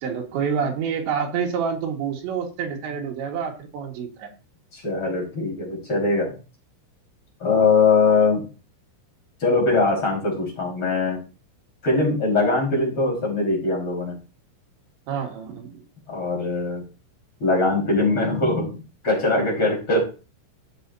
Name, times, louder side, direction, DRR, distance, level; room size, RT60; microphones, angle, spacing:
voice 1, 0.0-4.3 15.1-15.7, right 7 dB, 65° right, 1 dB, 3.8 m, -27 dB
voice 2, 4.7-6.3 7.4-8.4 9.4-11.2 11.8-14.2 16.1-16.8 17.4-18.8 19.0-20.0, left 3 dB, 25° left, -2 dB, 5.1 m, -21 dB
15.0 x 7.5 x 2.8 m, 0.33 s
omnidirectional pair, 6.0 m